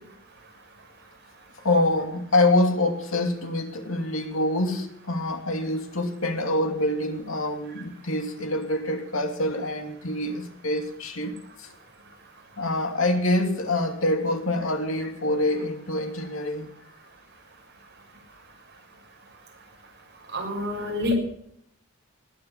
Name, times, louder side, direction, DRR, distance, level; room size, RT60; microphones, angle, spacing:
voice 1, 1.6-11.7 12.6-16.7, left 1 dB, 70° left, 2.7 m, -26 dB
voice 2, 20.3-21.1, left 1 dB, 55° right, 6.6 m, -27 dB
19.5 x 9.7 x 7.3 m
head